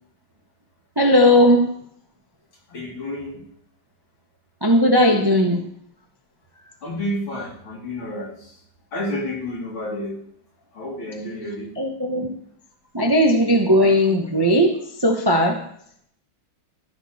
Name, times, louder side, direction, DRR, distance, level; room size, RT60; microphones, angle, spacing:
voice 1, 1.0-1.7 4.6-5.6 11.8-12.3 12.9-15.6, equal, 35° right, 2 dB, 0.3 m, -17 dB
voice 2, 2.7-3.4 6.8-8.6 8.9-10.2 10.7-11.7, left 1 dB, 90° left, -5 dB, 4.2 m, -30 dB
13.5 x 6.7 x 4.1 m, 0.67 s
omnidirectional pair, 2.1 m